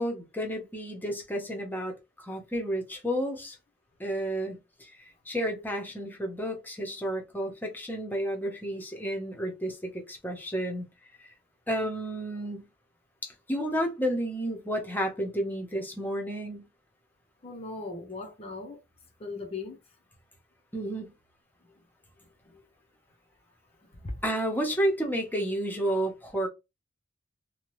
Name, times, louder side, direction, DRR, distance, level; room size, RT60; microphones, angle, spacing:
voice 1, 0.0-1.9 2.3-3.5 4.0-4.6 5.3-10.8 11.7-12.7 13.5-16.7 20.7-21.1 24.2-26.5, equal, 10° left, 0.9 m, -31 dB
voice 2, 17.4-18.8 19.2-19.8 22.5-22.6 24.0-24.2, left 3 dB, 30° left, 0.7 m, -38 dB
2.8 x 2.3 x 3.1 m
head